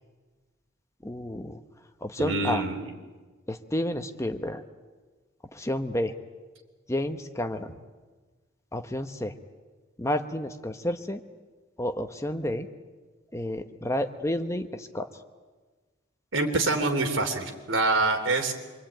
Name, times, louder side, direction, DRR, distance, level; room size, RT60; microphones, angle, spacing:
voice 1, 1.0-1.6 2.0-2.6 3.5-4.6 5.5-6.1 6.9-7.7 8.7-9.3 10.0-11.2 11.8-12.7 13.3-15.1, left 1 dB, 15° left, 7 dB, 1.1 m, -30 dB
voice 2, 2.2-2.9 16.3-18.5, right 2 dB, 80° right, 4 dB, 3.4 m, -25 dB
26.5 x 23.5 x 9.1 m, 1.3 s
head